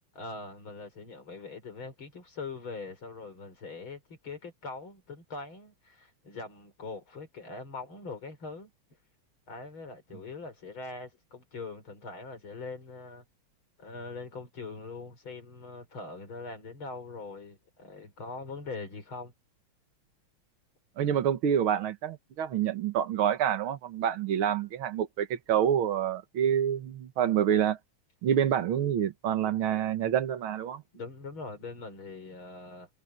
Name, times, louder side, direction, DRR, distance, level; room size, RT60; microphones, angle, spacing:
voice 1, 0.1-8.7 9.5-13.2 13.8-19.3 30.9-32.9, left 3 dB, 70° left, 5.9 m, -42 dB
voice 2, 21.0-27.8 28.2-30.8, right 9 dB, 75° right, 2.2 m, -27 dB
omnidirectional pair, 2.4 m